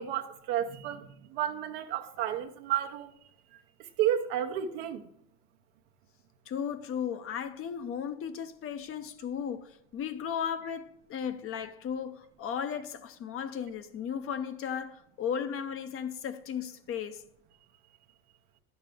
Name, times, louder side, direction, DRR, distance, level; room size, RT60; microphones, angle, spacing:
voice 1, 0.0-3.1 3.8-5.1, right 10 dB, 85° right, 0.8 m, -32 dB
voice 2, 6.5-17.2, left 8 dB, 45° left, 0.7 m, -35 dB
10.5 x 6.5 x 3.5 m
supercardioid pair, 100°, 30 cm